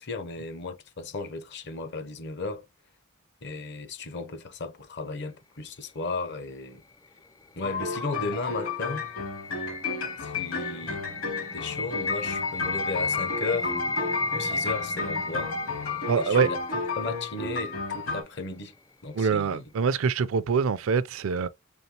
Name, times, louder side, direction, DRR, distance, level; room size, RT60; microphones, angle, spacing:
voice 1, 0.0-2.7 3.4-6.8 7.6-9.0 10.2-11.0 11.5-13.7 14.3-15.5 16.2-18.7 19.0-19.6, left 3 dB, 55° left, 0.8 m, -35 dB
sound 1, 7.6-18.2, left 4 dB, 70° left, 2.5 m, -32 dB
sound 2, 8.6-17.6, left 2 dB, 15° left, 0.4 m, -34 dB
voice 2, 16.1-16.5 19.1-21.5, right 5 dB, 65° right, 0.4 m, -24 dB
4.1 x 3.5 x 2.8 m
head